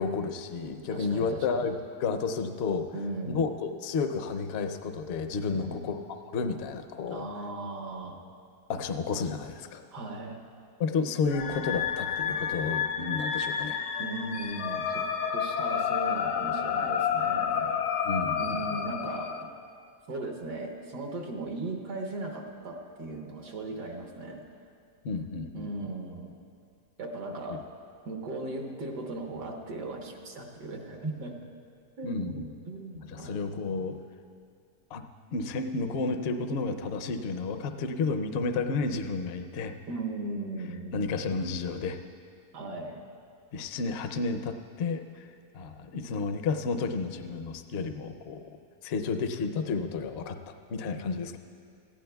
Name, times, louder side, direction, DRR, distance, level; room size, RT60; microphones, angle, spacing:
voice 1, 0.0-2.9 3.2-6.0 6.3-7.3 8.7-9.8 10.8-13.8 18.0-18.6 25.0-25.7 32.0-32.5 33.1-33.9 34.9-35.0 35.3-39.7 40.9-42.0 43.5-45.3 45.5-48.4 48.8-51.4, left 4 dB, 65° left, 8 dB, 0.6 m, -31 dB
voice 2, 0.9-1.7 2.9-3.4 5.5-5.8 7.1-8.2 9.9-10.4 14.0-15.0 15.3-17.8 18.4-19.5 20.1-24.4 25.5-26.3 27.0-27.6 28.1-31.4 32.0-33.5 39.9-41.1 42.5-43.0, right 2 dB, 80° right, 2 dB, 1.8 m, -37 dB
sound 1, 11.3-19.4, left 7 dB, 80° left, 1.3 m, -30 dB
17.5 x 15.0 x 2.3 m, 2.3 s
omnidirectional pair, 1.8 m